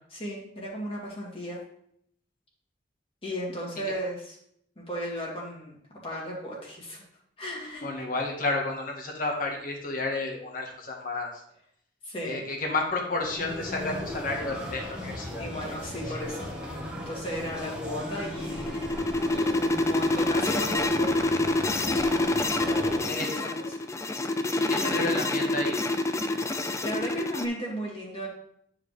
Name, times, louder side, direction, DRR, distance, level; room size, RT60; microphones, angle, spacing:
voice 1, 0.1-1.6 3.2-4.4 4.8-5.7 6.0-7.0 7.4-8.0 12.0-12.4 15.4-16.5 17.1-18.8 19.3-21.2 22.6-23.9 24.7-24.9 26.8-28.3, equal, 35° left, -3 dB, 2.3 m, -35 dB
voice 2, 7.8-11.4 12.2-15.5 16.1-16.2 23.0-23.3 24.6-25.8, left 2 dB, 50° left, 1 dB, 1.6 m, -31 dB
sound 1, 13.2-23.0, left 1 dB, 5° right, 1.2 m, -37 dB
sound 2, 18.0-27.5, left 2 dB, 15° left, 0.4 m, -27 dB
9.7 x 4.8 x 3.4 m, 0.69 s
head